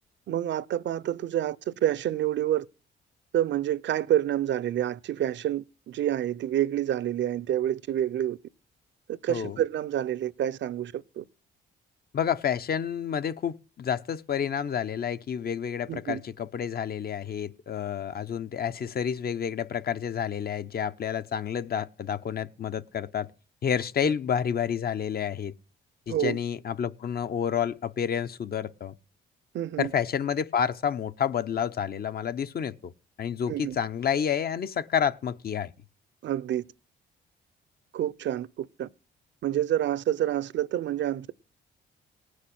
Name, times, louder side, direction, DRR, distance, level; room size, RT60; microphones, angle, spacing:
voice 1, 0.3-2.7 3.3-8.4 9.1-11.2 15.9-16.2 24.0-24.1 26.1-26.4 29.5-29.9 33.5-33.8 36.2-36.6 37.9-38.9 39.4-41.3, right 11 dB, 65° right, 0.7 m, -28 dB
voice 2, 12.1-23.3 23.6-25.5 26.1-28.9 29.8-32.9 33.2-35.7, left 8 dB, 50° left, 1.0 m, -29 dB
18.5 x 6.5 x 8.0 m
cardioid pair, 90°, 20 cm